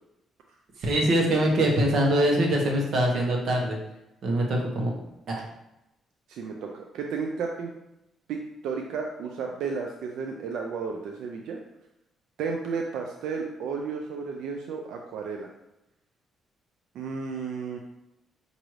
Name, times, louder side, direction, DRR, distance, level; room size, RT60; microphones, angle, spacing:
voice 1, 0.8-3.8 4.2-4.9 5.3-5.4, right 1 dB, 65° right, -1 dB, 1.0 m, -23 dB
voice 2, 6.3-7.7 8.3-11.6 12.4-15.5 16.9-17.8, right 5 dB, 80° right, 1 dB, 0.4 m, -33 dB
5.9 x 2.6 x 3.1 m, 0.89 s
cardioid pair, 90°, 0 cm